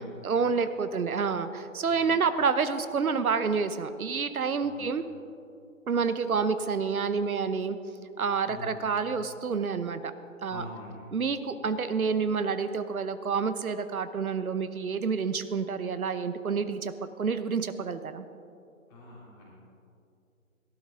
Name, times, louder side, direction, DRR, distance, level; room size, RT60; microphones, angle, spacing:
voice 1, 0.2-5.0 5.9-7.8 8.2-10.1 10.4-10.6 11.1-16.9 17.2-18.2, right 5 dB, 85° right, 11 dB, 0.9 m, -28 dB
voice 2, 8.4-8.8 10.5-11.1 18.9-19.5, left 1 dB, 15° left, -6 dB, 2.9 m, -44 dB
18.0 x 12.0 x 3.8 m, 2.6 s
hypercardioid pair, 165°, 42 cm